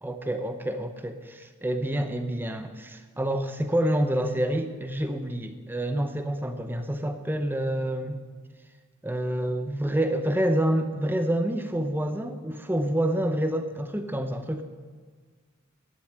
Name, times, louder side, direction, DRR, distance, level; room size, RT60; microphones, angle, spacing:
voice 1, 0.0-8.2 9.0-14.6, right 1 dB, 10° right, 7 dB, 0.6 m, -28 dB
10.5 x 8.0 x 9.0 m, 1.5 s
head